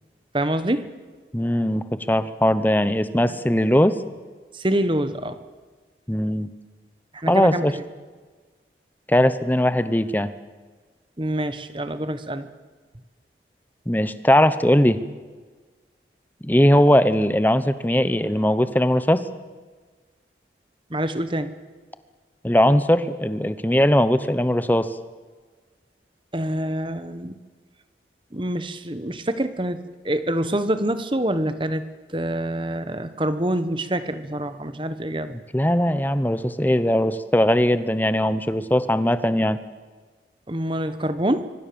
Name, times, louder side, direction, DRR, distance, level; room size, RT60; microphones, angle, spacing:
voice 1, 0.3-0.9 4.5-5.4 7.1-7.8 11.2-12.5 20.9-21.5 26.3-27.3 28.3-31.8 32.1-35.3 40.5-41.5, right 1 dB, 30° right, 11 dB, 1.3 m, -26 dB
voice 2, 1.3-4.0 6.1-6.5 7.3-7.7 9.1-10.3 13.9-15.0 16.4-19.2 22.4-24.9 35.5-39.6, left 1 dB, 10° left, 12 dB, 0.9 m, -19 dB
25.0 x 24.0 x 7.1 m, 1.4 s
head